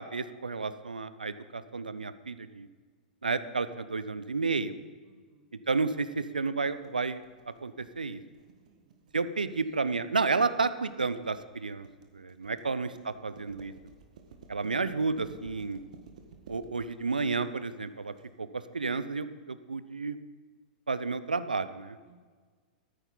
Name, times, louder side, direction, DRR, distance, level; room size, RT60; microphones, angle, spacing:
voice 1, 0.0-2.7 3.2-4.8 5.7-7.2 7.6-8.2 9.1-11.9 12.1-13.7 14.5-15.8 16.5-18.1 18.4-20.2 20.9-22.0, right 4 dB, 80° right, 13 dB, 0.5 m, -31 dB
voice 2, 5.0-5.5 8.6-9.1 12.4-12.8 22.0-22.2, right 5 dB, 35° right, 4 dB, 1.6 m, -63 dB
sound 1, 6.7-18.2, right 5 dB, 60° right, 1.5 m, -53 dB
13.0 x 9.8 x 3.9 m, 1.5 s
figure-of-eight pair, 100°, 5 cm